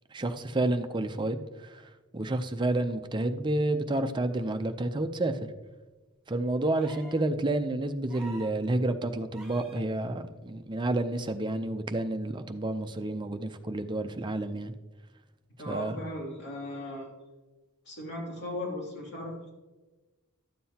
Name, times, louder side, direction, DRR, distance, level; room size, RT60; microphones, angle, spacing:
voice 1, 0.1-1.8 2.1-5.4 6.3-14.7 15.7-16.0, right 2 dB, 20° right, 7 dB, 0.5 m, -30 dB
sound 1, 6.7-7.3 8.1-8.6 9.3-9.8 11.3-11.4, right 2 dB, 5° right, 2.4 m, -47 dB
voice 2, 15.6-17.1 17.9-19.5, left 1 dB, 50° left, -3 dB, 2.8 m, -37 dB
12.5 x 7.6 x 2.8 m, 1.2 s
head